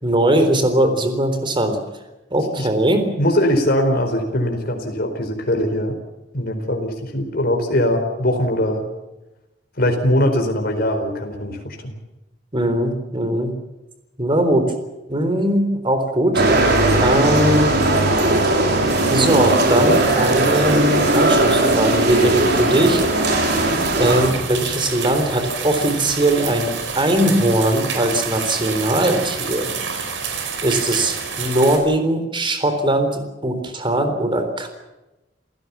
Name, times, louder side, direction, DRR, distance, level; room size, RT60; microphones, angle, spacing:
voice 1, 0.0-1.8 2.3-3.1 12.5-13.5 14.2-14.7 15.1-16.4 17.0-17.8 19.1-20.8 21.1-23.1 24.0-29.7 30.6-34.7, right 1 dB, 25° right, 8 dB, 3.8 m, -20 dB
voice 2, 3.2-6.0 6.3-8.9 9.8-12.0, left 1 dB, 55° left, 5 dB, 4.6 m, -21 dB
sound 1, 16.3-24.3, right 2 dB, 60° right, 4.6 m, -18 dB
sound 2, 18.9-31.8, right 5 dB, 80° right, 4.6 m, -29 dB
28.5 x 16.0 x 7.2 m, 1.0 s
head